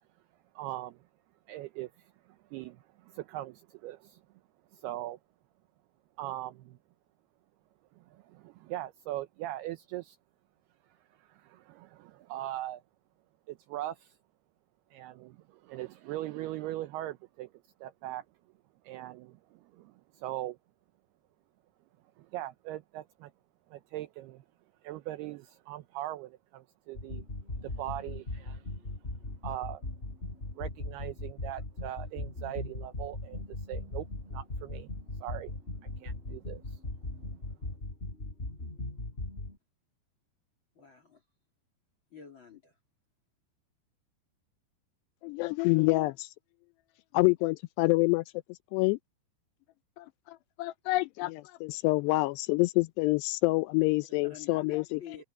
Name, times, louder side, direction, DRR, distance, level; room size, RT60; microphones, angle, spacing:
voice 1, 0.6-1.0 1.5-4.2 4.7-5.2 6.2-6.8 8.0-10.2 11.2-12.8 13.5-14.2 14.9-17.5 17.8-18.2 18.8-20.6 22.2-23.3 23.7-24.4 24.8-27.2 27.6-28.6 29.4-29.8 30.6-33.4 33.7-34.9 35.2-35.5 35.8-36.8, right 14 dB, 75° right, 2.6 m, -40 dB
sound 1, 26.9-39.6, left 2 dB, 15° left, 3.9 m, -39 dB
voice 2, 40.7-41.2 42.1-42.7 54.2-55.2, left 6 dB, 35° left, 2.7 m, -49 dB
voice 3, 45.2-46.3 47.1-48.2 48.7-49.0 50.0-55.0, left 22 dB, 85° left, 2.5 m, -27 dB
open air
omnidirectional pair, 5.0 m